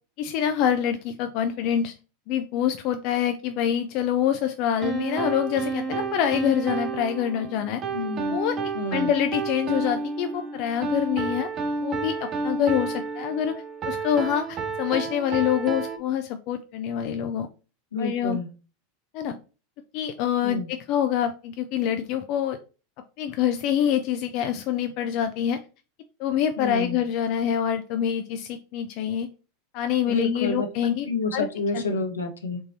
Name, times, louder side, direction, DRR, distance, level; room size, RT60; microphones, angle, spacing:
voice 1, 0.2-1.9 2.3-7.8 8.2-8.6 8.9-11.5 11.8-13.5 13.8-17.5 18.0-18.4 19.1-19.4 19.9-22.6 23.2-25.6 26.2-29.3 29.7-31.1 31.3-31.5 31.7-31.8, left 9 dB, 55° left, 8 dB, 0.4 m, -26 dB
sound 1, 4.8-16.0, right 4 dB, 35° right, 0.7 m, -30 dB
voice 2, 7.9-8.4 8.7-9.1 17.9-18.5 20.4-20.7 26.6-27.0 30.1-32.6, left 3 dB, 85° left, 3 dB, 0.9 m, -29 dB
3.6 x 2.7 x 4.1 m, 0.34 s
hypercardioid pair, 90°, 0 cm